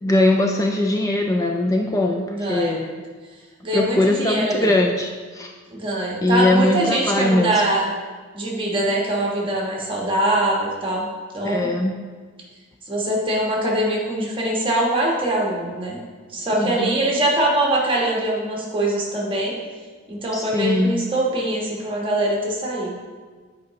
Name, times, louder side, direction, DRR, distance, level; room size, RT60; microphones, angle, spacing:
voice 1, 0.0-2.9 3.7-5.5 6.2-7.6 11.4-11.9 16.5-16.9 20.3-21.0, left 1 dB, 15° left, 2 dB, 0.4 m, -21 dB
voice 2, 2.3-2.8 3.6-4.7 5.7-7.9 8.3-11.1 11.3-11.7 12.9-16.0 16.3-19.5 20.1-22.9, right 1 dB, 25° right, -3 dB, 1.3 m, -23 dB
8.2 x 4.8 x 3.1 m, 1.5 s
head